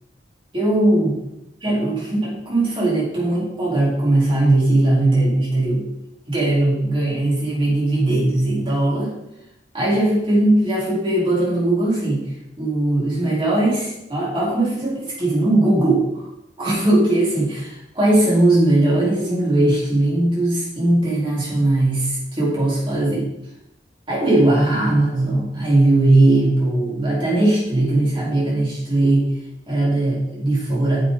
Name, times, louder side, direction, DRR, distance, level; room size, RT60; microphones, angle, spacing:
voice 1, 0.5-1.2 1.6-5.9 6.3-9.1 9.7-12.2 12.6-16.2 16.6-23.3 24.1-29.3 29.7-31.1, right 2 dB, 30° right, -6 dB, 4.1 m, -19 dB
9.7 x 7.6 x 4.1 m, 0.86 s
head